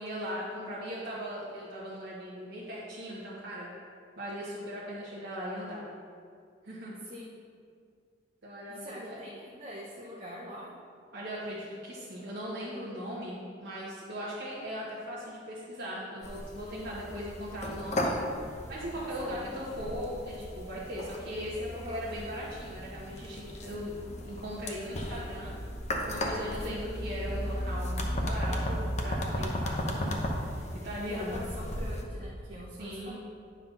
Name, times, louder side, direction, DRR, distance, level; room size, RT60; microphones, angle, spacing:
voice 1, 0.0-3.7 4.2-5.8 6.6-6.9 8.4-9.2 11.1-18.1 18.7-23.9 24.2-25.5 26.0-31.4 32.8-33.2, equal, 60° right, -8 dB, 1.3 m, -38 dB
voice 2, 7.0-7.3 8.7-10.7 18.9-19.6 21.7-22.1 31.0-33.2, equal, 30° right, -5 dB, 0.9 m, -44 dB
sound 1, 16.2-32.0, equal, 40° left, 0.9 m, -35 dB
9.5 x 3.9 x 5.7 m, 2.2 s
head